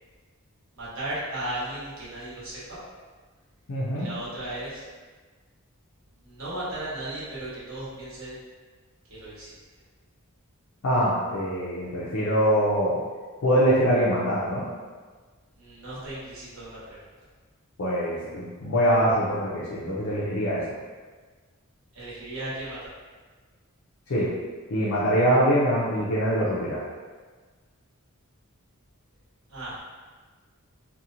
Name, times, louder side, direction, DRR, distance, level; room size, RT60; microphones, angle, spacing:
voice 1, 0.7-2.8 3.9-4.9 6.2-8.3 9.1-9.5 15.6-17.0 21.9-22.9 29.5-29.8, right 1 dB, 65° right, -9 dB, 1.0 m, -35 dB
voice 2, 3.7-4.1 10.8-13.0 13.4-14.6 17.8-20.6 24.1-24.3 24.7-26.8, equal, 65° left, -7 dB, 0.5 m, -23 dB
2.8 x 2.1 x 2.5 m, 1.4 s
head